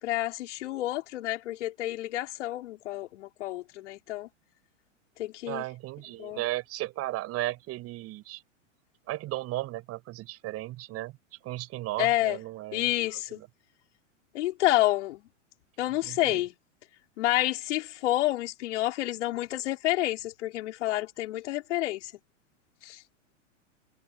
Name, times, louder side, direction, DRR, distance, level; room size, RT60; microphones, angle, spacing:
voice 1, 0.0-4.3 5.2-5.6 6.2-6.4 12.0-12.4 12.7-13.4 14.3-15.2 15.8-16.5 17.2-22.1 22.8-23.0, left 16 dB, 65° left, 4.9 m, -29 dB
voice 2, 5.4-8.4 9.1-11.2 11.4-12.9 13.3-13.5 16.0-16.4, right 17 dB, 40° right, 7.9 m, -35 dB
hypercardioid pair, 120°, 38 cm